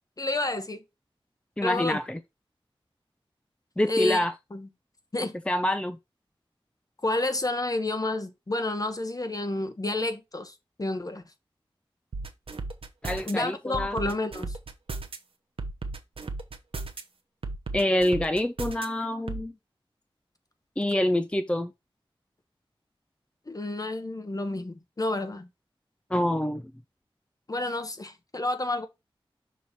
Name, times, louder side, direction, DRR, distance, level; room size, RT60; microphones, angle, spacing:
voice 1, 0.2-0.8 1.6-2.0 3.9-4.2 4.5-4.7 5.1-5.3 7.0-11.2 13.3-14.6 23.5-25.5 27.5-28.9, left 2 dB, 40° left, 1.0 m, -30 dB
voice 2, 1.6-2.2 3.8-4.3 5.5-6.0 13.0-14.0 17.7-19.5 20.8-21.7 26.1-26.7, left 1 dB, 10° left, 0.5 m, -26 dB
sound 1, 12.1-13.3 13.7-15.2 15.6-17.0 17.4-18.9 19.3-19.4, right 3 dB, 70° right, 0.8 m, -34 dB
6.2 x 2.9 x 5.3 m
wide cardioid pair, 60°, 10 cm